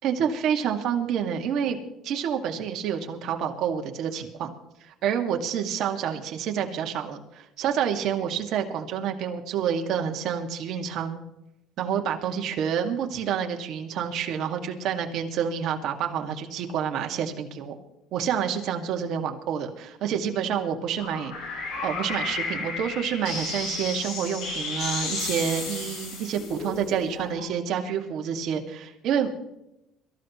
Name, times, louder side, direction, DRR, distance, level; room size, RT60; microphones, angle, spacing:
voice 1, 0.0-1.8 2.0-4.6 4.9-11.2 11.8-17.8 18.1-29.4, right 8 dB, 60° right, 3 dB, 2.0 m, -28 dB
sound 1, 21.0-27.5, left 3 dB, 75° left, 6.3 m, -33 dB
24.5 x 14.0 x 3.1 m, 0.87 s
cardioid pair, 135°, 0 cm